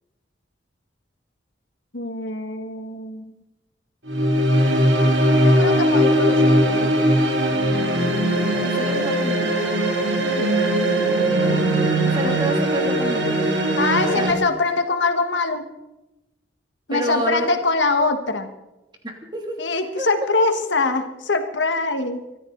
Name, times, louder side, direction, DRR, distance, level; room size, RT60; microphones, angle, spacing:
voice 1, 1.9-3.3 5.4-7.0 10.2-10.8 12.2-12.4 13.8-15.7 16.9-18.5 19.6-22.2, left 3 dB, 85° left, 7 dB, 1.6 m, -23 dB
sound 1, 4.1-14.3, right 1 dB, 85° right, 2.8 m, -19 dB
voice 2, 8.5-9.5 12.0-13.4 14.1-14.3 16.9-17.5 19.0-19.6 20.0-20.1, equal, 25° right, 2 dB, 2.7 m, -28 dB
24.0 x 13.0 x 4.0 m, 0.99 s
head